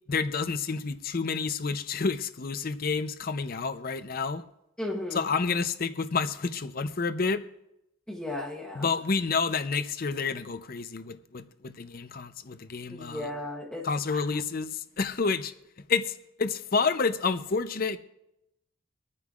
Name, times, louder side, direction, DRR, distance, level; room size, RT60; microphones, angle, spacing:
voice 1, 0.1-4.4 5.1-7.4 8.8-13.3 13.8-15.5 15.9-18.0, left 4 dB, 45° left, 0.6 m, -29 dB
voice 2, 4.8-5.3 8.1-8.9 12.9-14.2, left 1 dB, 5° left, 1.1 m, -35 dB
24.5 x 9.7 x 2.4 m
head